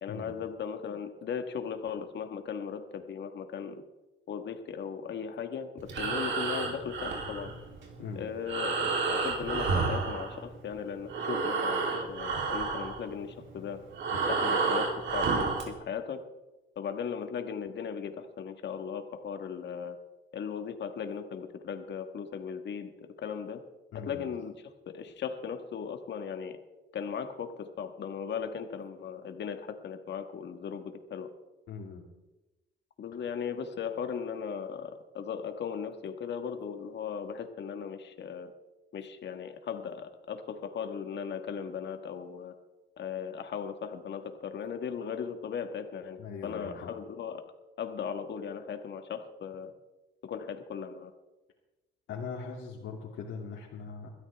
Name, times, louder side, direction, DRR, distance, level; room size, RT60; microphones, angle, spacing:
voice 1, 0.0-3.8 4.3-7.5 8.1-13.8 14.1-16.2 16.7-20.0 20.3-23.6 23.9-26.6 26.9-31.3 33.0-38.5 38.9-42.5 43.0-47.4 47.8-49.7 50.2-51.1, left 7 dB, 60° left, 7 dB, 1.5 m, -37 dB
Breathing, 5.8-10.8 11.0-15.7, right 4 dB, 70° right, 3.3 m, -31 dB
voice 2, 23.9-24.3 31.7-32.0 46.2-46.9 52.1-54.1, left 5 dB, 80° left, -5 dB, 2.6 m, -40 dB
22.0 x 13.0 x 3.5 m, 1.1 s
cardioid pair, 90°, 20 cm